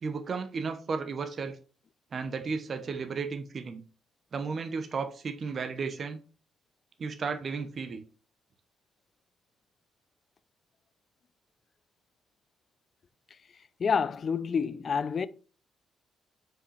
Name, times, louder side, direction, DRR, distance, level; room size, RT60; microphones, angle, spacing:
voice 1, 0.0-1.6 2.1-3.8 4.3-6.2 7.0-8.0, right 5 dB, 45° right, 0.9 m, -34 dB
voice 2, 13.8-15.3, left 6 dB, 45° left, 0.4 m, -28 dB
6.4 x 5.0 x 3.3 m
cardioid pair, 90°, 0 cm